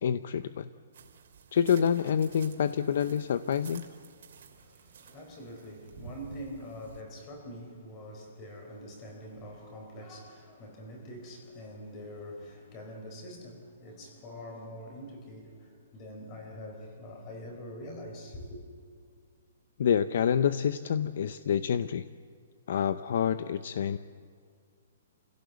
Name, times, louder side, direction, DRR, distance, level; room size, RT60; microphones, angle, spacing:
voice 1, 0.0-0.7 1.5-3.9 19.8-22.1 22.7-24.0, left 8 dB, 50° left, 0.6 m, -27 dB
sound 1, 0.9-7.0, right 6 dB, 50° right, 2.9 m, -51 dB
voice 2, 4.5-18.6, equal, 20° left, 3.9 m, -44 dB
28.5 x 16.5 x 8.2 m
hypercardioid pair, 180°, 0 cm